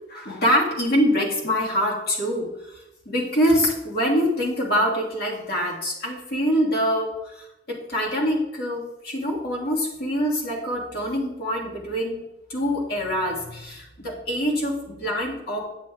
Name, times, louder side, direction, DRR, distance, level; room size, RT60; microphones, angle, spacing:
voice 1, 0.1-2.8 3.1-12.2 12.5-15.7, equal, 55° left, -3 dB, 1.7 m, -25 dB
9.3 x 7.4 x 2.4 m, 0.92 s
head